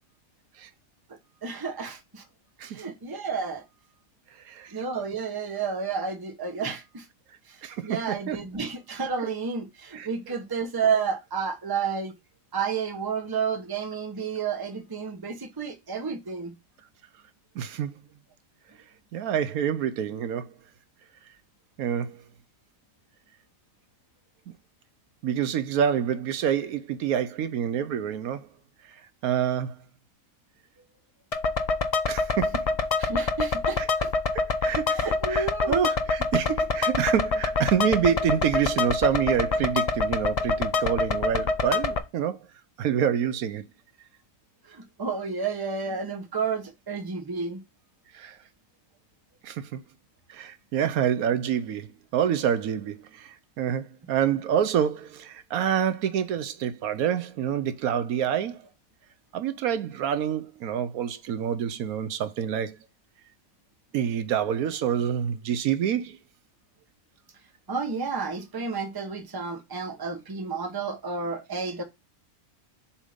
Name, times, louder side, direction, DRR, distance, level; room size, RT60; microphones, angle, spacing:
voice 1, 1.4-2.2 2.6-3.6 4.7-7.0 7.8-12.1 12.5-16.5 33.0-34.1 34.9-35.8 44.7-47.6 67.7-71.8, right 5 dB, 20° right, 0.8 m, -31 dB
voice 2, 7.6-8.4 9.9-10.1 17.6-17.9 19.1-20.4 21.8-22.2 25.2-28.5 29.2-29.7 32.1-32.6 33.8-33.9 34.6-35.0 35.3-42.4 42.8-43.6 48.1-48.4 49.4-49.8 50.3-51.9 52.1-58.6 59.3-62.8 63.9-66.2, right 9 dB, 80° right, 1.1 m, -27 dB
sound 1, 31.3-42.0, left 3 dB, 60° left, 0.3 m, -26 dB
7.2 x 2.8 x 5.0 m
omnidirectional pair, 1.6 m